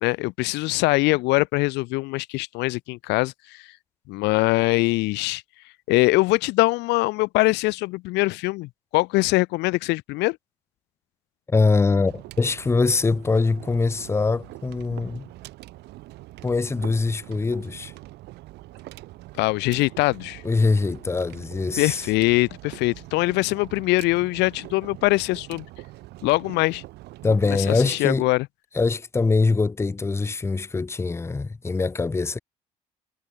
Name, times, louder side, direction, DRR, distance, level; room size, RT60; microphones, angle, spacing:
voice 1, 0.0-3.7 4.1-5.4 5.9-10.4 19.4-20.4 21.8-25.7 26.2-26.8 27.2-27.3 27.7-28.5, left 22 dB, 70° left, 0.5 m, -23 dB
voice 2, 11.5-15.3 16.4-17.9 20.4-22.0 27.2-28.3 28.7-32.4, left 3 dB, 15° left, 0.5 m, -23 dB
sound 1, 11.9-28.0, right 18 dB, 70° right, 0.6 m, -43 dB
hypercardioid pair, 60°, 18 cm